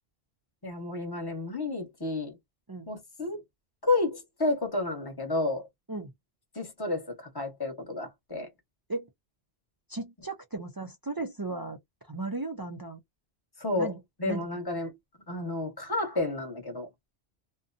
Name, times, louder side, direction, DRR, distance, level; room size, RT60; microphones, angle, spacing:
voice 1, 0.6-2.4 2.9-3.4 3.8-5.7 6.5-8.5 13.6-13.9 14.2-14.9 15.3-16.9, left 2 dB, 25° left, 1.1 m, -31 dB
voice 2, 9.9-11.8 12.1-13.0 13.8-14.0 14.3-14.5, right 2 dB, 30° right, 0.4 m, -35 dB
2.6 x 2.2 x 2.5 m
omnidirectional pair, 1.0 m